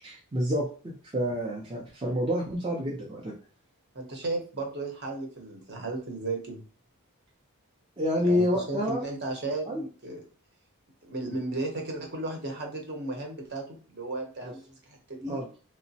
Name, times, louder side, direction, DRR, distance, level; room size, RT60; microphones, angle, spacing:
voice 1, 0.0-3.3 8.0-9.0 9.7-9.8 14.4-14.5 15.3-15.4, equal, 20° right, -3 dB, 0.4 m, -28 dB
voice 2, 3.9-6.6 8.2-10.2 11.0-14.6 14.9-15.4, right 2 dB, 50° right, 2 dB, 0.8 m, -35 dB
2.9 x 2.0 x 2.7 m, 0.39 s
head